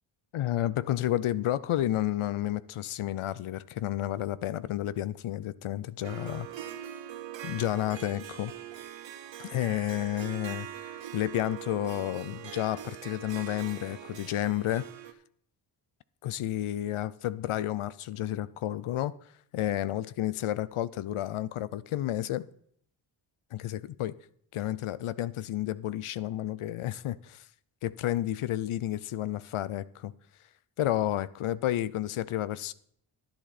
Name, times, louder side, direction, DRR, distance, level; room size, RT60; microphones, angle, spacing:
voice 1, 0.3-6.5 7.4-8.5 9.4-14.9 16.2-19.1 19.5-22.5 23.5-24.1 24.5-27.4 27.8-30.1 30.8-32.7, left 13 dB, 80° left, 0.7 m, -31 dB
Harp, 6.0-15.1, right 11 dB, 65° right, 0.9 m, -42 dB
11.5 x 10.5 x 4.1 m
wide cardioid pair, 100°, 49 cm